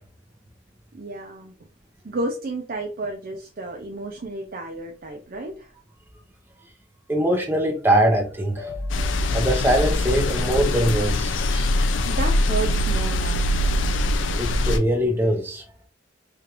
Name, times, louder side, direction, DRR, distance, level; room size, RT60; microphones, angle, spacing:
voice 1, 0.9-1.5 2.0-5.7 12.0-13.5, right 2 dB, 50° right, 2 dB, 0.5 m, -32 dB
voice 2, 7.1-8.7 9.3-11.7 14.4-15.6, right 1 dB, 10° right, 1 dB, 0.8 m, -22 dB
sound 1, 8.6-11.7, left 1 dB, 55° left, 1.1 m, -32 dB
sound 2, 8.9-14.8, left 1 dB, 85° left, 0.4 m, -23 dB
4.9 x 2.5 x 3.0 m, 0.38 s
head